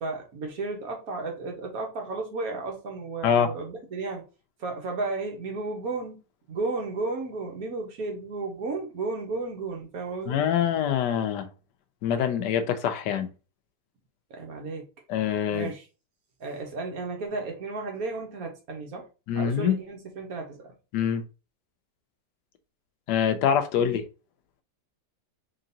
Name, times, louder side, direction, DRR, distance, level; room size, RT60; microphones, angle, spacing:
voice 1, 0.0-4.2 4.6-6.2 6.5-10.4 14.3-14.9 15.5-15.8 16.4-19.1 19.4-20.7 23.8-23.9, right 3 dB, 60° right, 1.5 m, -33 dB
voice 2, 10.3-11.5 12.0-13.3 15.1-15.7 19.3-19.8 20.9-21.2 23.1-24.0, left 8 dB, 85° left, 1.3 m, -24 dB
3.8 x 3.7 x 2.7 m
omnidirectional pair, 1.8 m